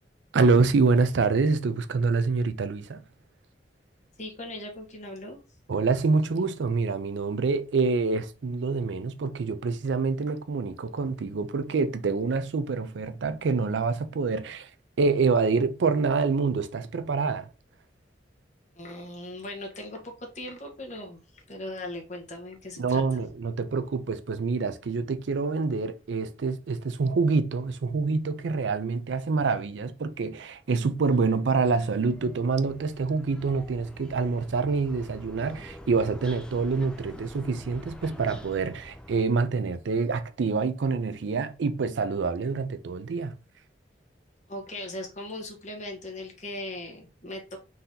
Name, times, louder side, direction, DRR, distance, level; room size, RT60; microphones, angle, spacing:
voice 1, 0.3-3.0 5.7-14.7 15.0-17.5 22.8-43.4, right 4 dB, 80° right, 0.4 m, -26 dB
voice 2, 4.2-5.4 18.8-23.0 44.5-47.6, left 1 dB, 40° left, 1.2 m, -39 dB
sound 1, 30.9-39.3, equal, 5° left, 0.5 m, -46 dB
3.9 x 2.8 x 3.8 m
head